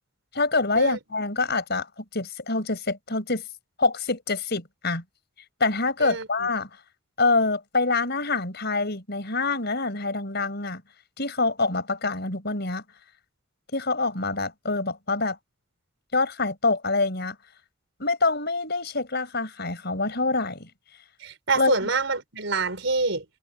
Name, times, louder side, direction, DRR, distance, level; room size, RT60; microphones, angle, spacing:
voice 1, 0.3-3.4 3.8-5.0 5.6-6.7 7.2-10.8 11.2-12.8 13.7-15.4 16.1-17.4 18.0-20.7 21.5-21.9, left 3 dB, 55° left, 6.0 m, -26 dB
voice 2, 21.2-23.2, right 3 dB, 65° right, 5.6 m, -26 dB
head